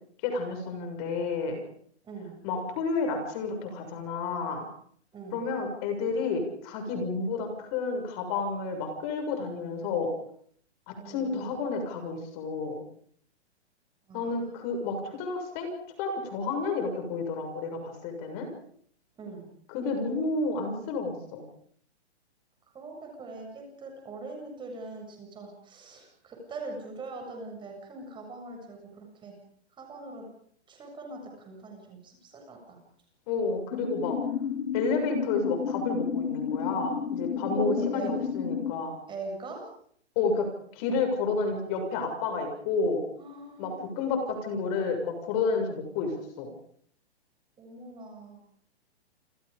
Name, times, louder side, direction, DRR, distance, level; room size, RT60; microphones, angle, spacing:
voice 1, 0.2-1.6 2.4-4.7 5.3-10.1 10.9-12.8 14.1-15.7 16.0-18.5 19.7-21.4 33.3-34.2 34.7-39.0 40.1-40.5 40.7-43.0 43.6-43.7 44.0-46.5, left 4 dB, 35° left, 5 dB, 6.8 m, -30 dB
voice 2, 2.0-2.3 5.1-5.4 11.0-11.5 14.1-14.4 19.2-19.5 22.7-29.4 29.7-30.2 30.7-32.8 37.6-38.1 39.1-39.7 43.2-43.8 47.6-48.4, right 3 dB, 15° right, 2 dB, 7.6 m, -41 dB
sound 1, 33.7-38.7, left 7 dB, 65° left, 2.2 m, -31 dB
29.0 x 27.5 x 5.3 m, 0.63 s
hypercardioid pair, 150°, 33 cm